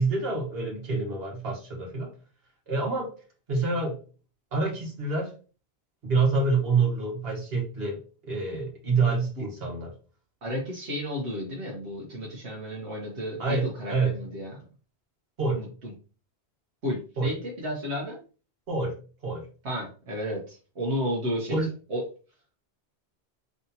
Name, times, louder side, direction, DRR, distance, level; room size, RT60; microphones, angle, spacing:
voice 1, 0.0-2.1 2.7-3.1 3.5-4.0 4.5-5.3 6.0-9.9 13.4-14.1 15.4-15.6 17.2-17.3 18.7-18.9 19.2-19.4 21.5-21.7, right 4 dB, 60° right, -2 dB, 1.6 m, -27 dB
voice 2, 10.4-14.6 15.5-15.9 16.8-18.2 19.6-21.6 21.9-22.0, equal, 80° right, -2 dB, 1.3 m, -32 dB
3.9 x 3.4 x 2.8 m, 0.36 s
omnidirectional pair, 1.1 m